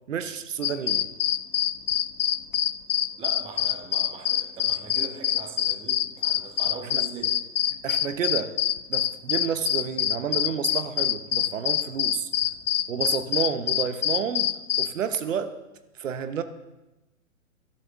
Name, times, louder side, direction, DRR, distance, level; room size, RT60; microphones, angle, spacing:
voice 1, 0.1-1.1 6.8-7.0 7.8-8.5 8.9-12.3 12.9-15.5 16.0-16.4, right 7 dB, 60° right, 11 dB, 1.1 m, -30 dB
sound 1, 0.6-14.9, left 11 dB, 75° left, 0.6 m, -25 dB
voice 2, 3.2-7.3, right 6 dB, 15° right, 5 dB, 1.0 m, -41 dB
20.0 x 12.0 x 3.6 m, 1.0 s
hypercardioid pair, 140°, 43 cm